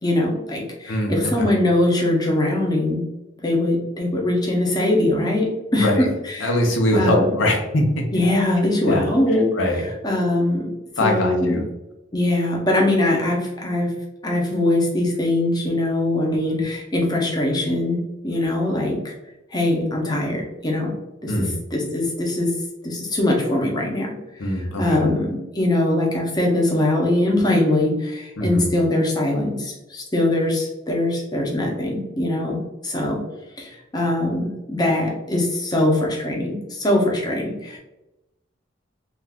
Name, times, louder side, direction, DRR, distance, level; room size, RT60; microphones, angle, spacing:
voice 1, 0.0-3.0 3.4-6.6 6.9-7.4 8.1-9.5 9.8-10.7 11.0-11.6 12.1-13.9 14.2-19.1 19.5-20.9 21.2-22.5 22.8-33.2 33.6-37.8, left 1 dB, 20° left, -1 dB, 0.7 m, -22 dB
voice 2, 0.9-1.5 5.8-6.1 6.4-8.0 8.6-9.1 9.6-9.9 11.0-11.6 21.3-21.5 24.4-25.1 28.4-28.7, left 1 dB, 90° left, 1 dB, 0.7 m, -22 dB
2.5 x 2.4 x 3.4 m, 0.97 s
head